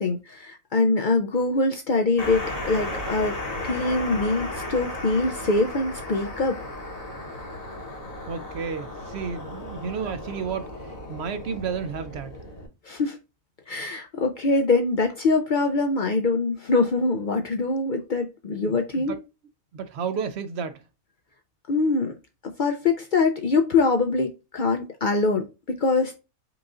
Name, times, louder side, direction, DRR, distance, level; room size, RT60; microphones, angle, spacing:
voice 1, 0.0-3.3 3.6-6.6 12.8-13.2 13.7-19.2 21.7-22.1 22.4-26.2, left 3 dB, 60° left, 0.5 m, -24 dB
sound 1, 2.2-12.7, left 1 dB, 30° left, 1.1 m, -35 dB
voice 2, 8.3-12.4 18.6-19.2 19.7-20.8, right 6 dB, 65° right, 0.7 m, -32 dB
4.7 x 2.5 x 3.7 m
omnidirectional pair, 1.4 m